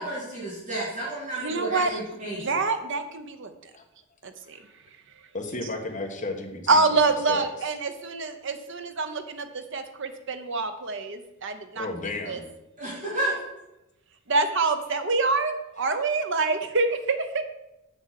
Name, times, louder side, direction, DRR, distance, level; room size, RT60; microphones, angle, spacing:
voice 1, 0.0-2.5 12.8-13.3, right 2 dB, 35° right, -7 dB, 2.8 m, -31 dB
voice 2, 1.4-2.0 2.3-3.5 4.2-4.6 6.7-11.9 12.3-12.4 14.3-17.4, right 3 dB, 60° right, 8 dB, 0.9 m, -26 dB
voice 3, 5.3-6.8 7.3-7.5 11.7-12.4, left 2 dB, 35° left, 2 dB, 1.3 m, -33 dB
7.0 x 6.9 x 5.9 m, 0.94 s
head